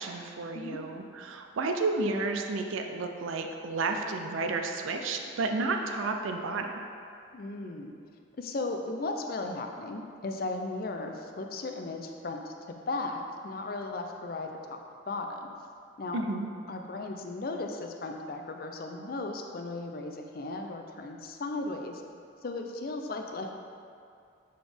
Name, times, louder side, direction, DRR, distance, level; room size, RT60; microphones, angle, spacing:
voice 1, 0.0-6.8 16.1-16.5, right 3 dB, 90° right, 4 dB, 0.4 m, -31 dB
voice 2, 7.3-7.9 8.4-14.8 15.1-15.5 16.0-16.2 16.7-22.0 22.4-23.5, left 2 dB, 50° left, 4 dB, 0.4 m, -36 dB
7.6 x 4.1 x 3.4 m, 2.4 s
head